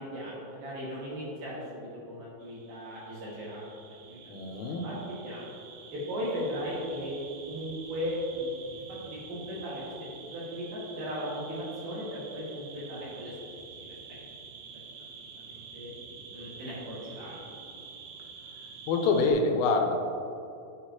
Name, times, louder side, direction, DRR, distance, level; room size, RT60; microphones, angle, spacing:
voice 1, 0.0-4.2 4.8-5.0 5.2-5.5 5.9-7.2 7.5-9.8 10.3-13.3 13.8-14.0 15.0-15.1 15.4-15.9 16.3-17.4, equal, 55° right, -7 dB, 3.4 m, -37 dB
sound 1, 2.4-19.3, right 5 dB, 75° right, 2.9 m, -48 dB
voice 2, 4.3-4.9 18.9-19.9, left 3 dB, 90° left, 3 dB, 3.4 m, -25 dB
9.8 x 8.1 x 3.0 m, 2.7 s
omnidirectional pair, 5.7 m